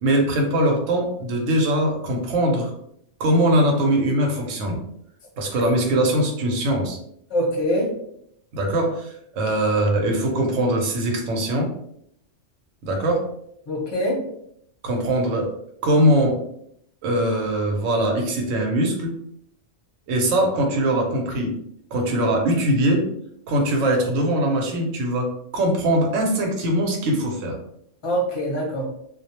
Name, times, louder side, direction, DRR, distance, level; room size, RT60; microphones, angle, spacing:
voice 1, 0.0-2.7 3.2-4.8 5.4-7.0 8.5-11.7 12.8-13.2 14.8-15.5 15.8-16.4 17.0-19.1 20.1-21.5 21.9-23.0 23.5-27.5, right 1 dB, 85° right, 1 dB, 1.0 m, -21 dB
voice 2, 7.3-7.9 13.7-14.2 28.0-28.8, equal, 30° left, -2 dB, 0.6 m, -23 dB
2.3 x 2.1 x 2.8 m, 0.71 s
omnidirectional pair, 1.3 m